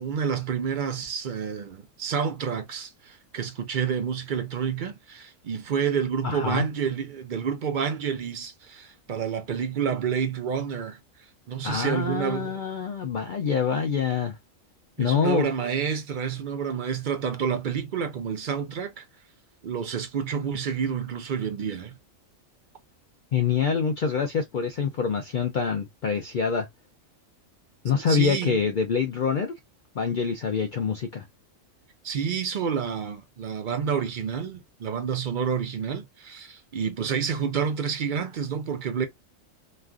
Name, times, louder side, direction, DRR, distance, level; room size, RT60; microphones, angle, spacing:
voice 1, 0.0-11.0 11.5-12.6 15.0-19.0 19.6-21.9 28.1-28.6 32.0-39.1, right 7 dB, 60° right, 0.5 m, -29 dB
voice 2, 6.2-6.6 11.6-14.4 15.0-15.5 23.3-26.7 27.8-29.5 30.0-31.3, left 6 dB, 80° left, 0.4 m, -25 dB
3.1 x 2.4 x 2.3 m
omnidirectional pair, 1.4 m